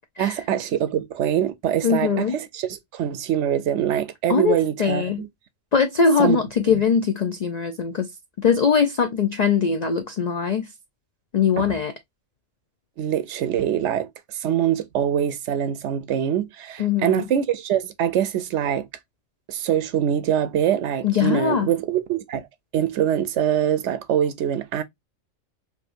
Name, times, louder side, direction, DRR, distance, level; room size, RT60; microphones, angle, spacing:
voice 1, 0.2-5.3 6.2-6.4 6.7-6.8 11.6-11.8 13.0-18.9 19.5-22.5 22.7-24.8, right 10 dB, 65° right, 0.8 m, -24 dB
voice 2, 1.8-2.3 4.3-5.2 5.7-8.1 8.4-10.7 11.3-11.9 16.8-17.2 21.0-21.7, left 6 dB, 90° left, 0.3 m, -21 dB
4.6 x 2.8 x 2.5 m
omnidirectional pair, 1.4 m